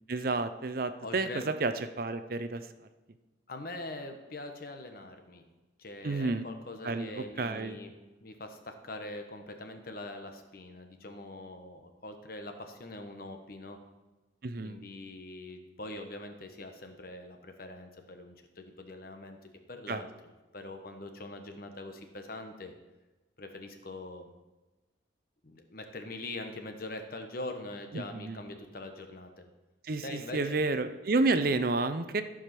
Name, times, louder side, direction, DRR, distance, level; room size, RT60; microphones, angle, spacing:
voice 1, 0.1-2.6 6.0-6.5 6.8-7.8 14.4-14.8 19.9-20.0 27.9-28.4 29.8-32.2, right 3 dB, 50° right, 10 dB, 0.6 m, -30 dB
voice 2, 1.0-1.4 3.5-5.4 5.8-7.9 8.2-13.8 14.6-19.4 19.7-20.1 20.5-22.7 23.4-24.3 25.4-29.4 30.0-30.6, left 2 dB, 50° left, 5 dB, 1.1 m, -43 dB
14.5 x 5.0 x 5.9 m, 1.1 s
head